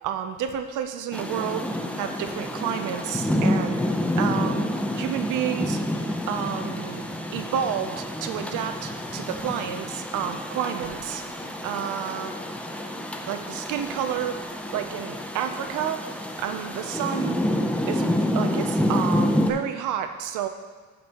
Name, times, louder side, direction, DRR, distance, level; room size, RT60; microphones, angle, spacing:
voice 1, 0.0-1.7 2.0-3.8 4.2-4.7 5.0-5.8 6.3-7.1 7.3-11.2 11.6-12.3 13.3-14.4 14.7-16.1 16.4-17.3 17.9-18.0 18.3-20.5, right 9 dB, 90° right, 8 dB, 0.6 m, -30 dB
Rain, 1.1-19.5, left 1 dB, 5° left, 0.6 m, -28 dB
11.5 x 5.3 x 2.9 m, 1.5 s
cardioid pair, 90°, 30 cm